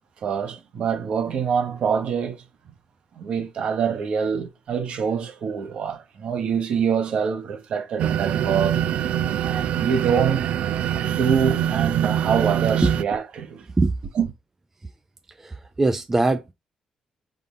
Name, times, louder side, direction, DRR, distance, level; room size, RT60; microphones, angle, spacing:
voice 1, 0.2-2.4 3.2-8.8 9.4-10.4 11.0-13.6 14.1-14.3, right 7 dB, 60° right, 1.3 m, -25 dB
sound 1, 8.0-13.0, right 10 dB, 80° right, 0.3 m, -24 dB
voice 2, 15.4-16.5, right 3 dB, 15° right, 0.4 m, -21 dB
5.1 x 3.8 x 2.2 m
cardioid pair, 145°, 2 cm